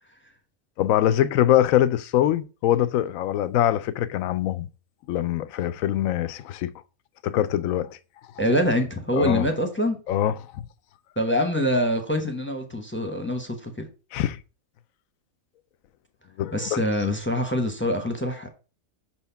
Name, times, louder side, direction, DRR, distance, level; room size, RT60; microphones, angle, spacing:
voice 1, 0.8-4.7 5.1-6.7 7.2-8.0 9.1-9.5 10.1-10.6 14.1-14.4 16.4-16.8, left 12 dB, 75° left, 1.0 m, -23 dB
voice 2, 8.4-10.0 11.2-13.9 16.5-18.5, equal, 10° left, 0.9 m, -25 dB
6.1 x 4.4 x 5.7 m
omnidirectional pair, 1.4 m